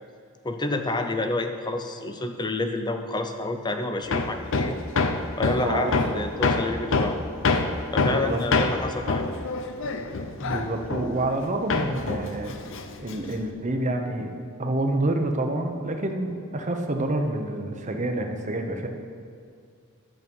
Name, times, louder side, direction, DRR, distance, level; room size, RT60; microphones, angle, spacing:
voice 1, 0.4-4.8 5.4-7.2 7.9-9.4, left 2 dB, 20° left, 6 dB, 0.6 m, -29 dB
Hammer, 4.1-11.4 11.7-13.5, left 3 dB, 60° left, 0.7 m, -26 dB
voice 2, 5.6-5.9 8.0-8.4 10.4-12.5 13.0-14.3 14.6-18.9, right 2 dB, 35° right, 4 dB, 0.9 m, -28 dB
11.0 x 7.5 x 5.4 m, 2.3 s
head